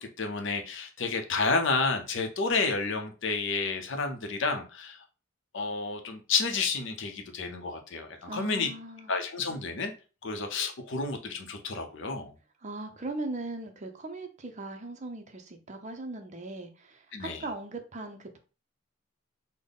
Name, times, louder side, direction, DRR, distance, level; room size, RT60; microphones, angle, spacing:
voice 1, 0.0-5.0 5.5-8.7 9.1-9.9 10.2-12.3 17.1-17.4, left 4 dB, 65° left, 5 dB, 0.6 m, -30 dB
voice 2, 8.3-9.1 12.6-18.4, right 2 dB, 35° right, 6 dB, 0.6 m, -39 dB
3.9 x 2.1 x 3.5 m, 0.34 s
head